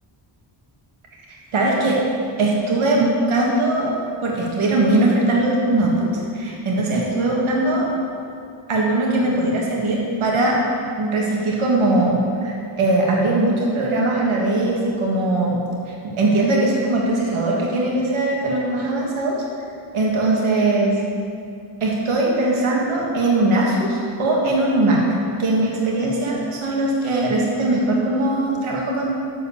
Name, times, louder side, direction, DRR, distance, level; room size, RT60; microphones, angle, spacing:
voice 1, 1.3-2.0 2.4-3.9 4.2-6.1 6.3-7.9 8.7-10.6 11.0-15.6 15.9-19.4 19.9-21.0 21.8-25.0 25.4-29.1, right 2 dB, 90° right, -3 dB, 1.8 m, -20 dB
8.2 x 6.8 x 7.0 m, 2.4 s
wide cardioid pair, 110°, 48 cm